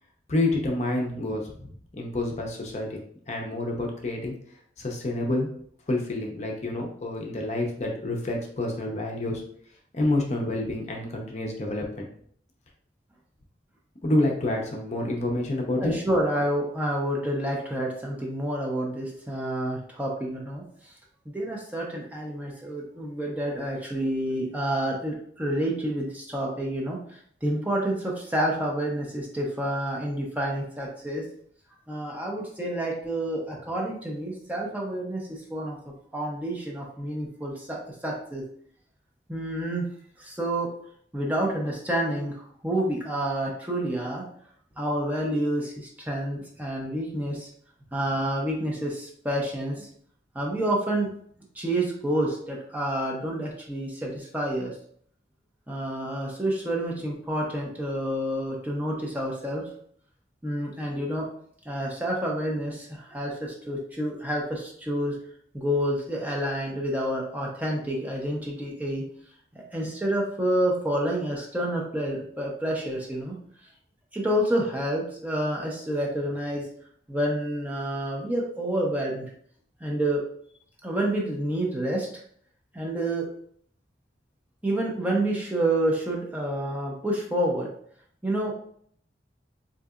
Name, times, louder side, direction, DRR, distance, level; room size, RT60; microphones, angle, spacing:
voice 1, 0.3-1.7 1.9-3.0 3.3-4.3 4.8-5.5 5.9-9.4 9.9-12.1 14.0-16.0, left 1 dB, 40° left, 0 dB, 0.6 m, -28 dB
voice 2, 15.8-20.9 21.3-31.2 31.9-35.8 36.1-38.4 39.3-39.9 40.2-40.7 41.1-44.2 44.8-47.5 47.9-49.9 50.3-51.1 51.5-54.7 55.7-59.6 60.4-61.3 61.7-65.2 65.5-69.0 69.7-73.4 74.1-76.7 77.1-79.3 79.8-80.2 80.8-82.2 82.7-83.3 84.6-87.7 88.2-88.5, right 1 dB, 10° right, -2 dB, 0.5 m, -28 dB
3.8 x 2.7 x 2.4 m, 0.62 s
head